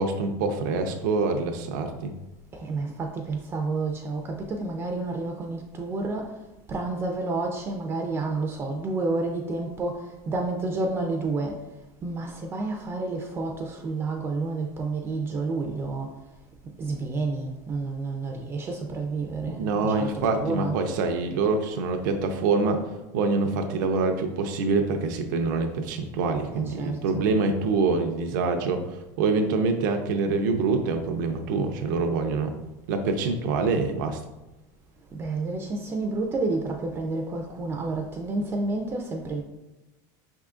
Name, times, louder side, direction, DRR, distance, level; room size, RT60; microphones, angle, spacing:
voice 1, 0.0-2.1 19.6-22.8 23.1-32.5 32.9-34.2, right 4 dB, 80° right, 5 dB, 0.5 m, -25 dB
voice 2, 2.5-11.7 12.0-16.2 16.8-20.8 26.5-27.2 35.1-39.4, right 3 dB, 20° right, 2 dB, 0.4 m, -30 dB
4.9 x 3.6 x 2.4 m, 1.0 s
supercardioid pair, 145°, 10 cm